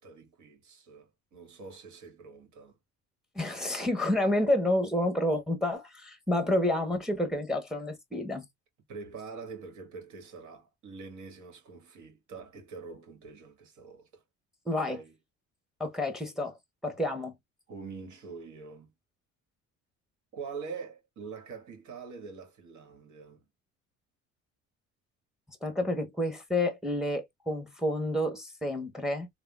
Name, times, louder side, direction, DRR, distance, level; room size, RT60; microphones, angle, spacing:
voice 1, 0.0-2.8 8.9-14.2 14.9-15.2 17.7-18.9 20.3-23.4, right 5 dB, 60° right, 1.7 m, -44 dB
voice 2, 3.3-8.5 14.7-15.0 15.8-16.6 16.8-17.3 25.6-29.3, left 1 dB, ahead, 1.0 m, -29 dB
3.5 x 2.3 x 2.3 m
supercardioid pair, 80°, 33 cm